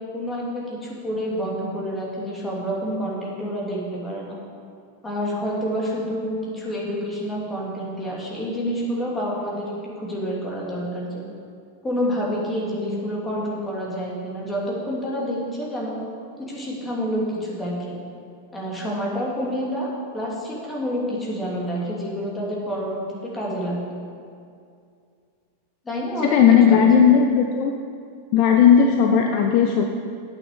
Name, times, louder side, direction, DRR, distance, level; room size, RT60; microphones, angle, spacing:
voice 1, 0.0-4.4 5.0-11.2 11.8-16.0 16.4-17.9 18.5-23.8 25.8-26.8, equal, 15° left, -5 dB, 2.8 m, -28 dB
voice 2, 26.2-27.7 28.3-29.9, left 7 dB, 45° left, 3 dB, 0.7 m, -16 dB
8.7 x 6.5 x 8.2 m, 2.3 s
figure-of-eight pair, 90°, 0 cm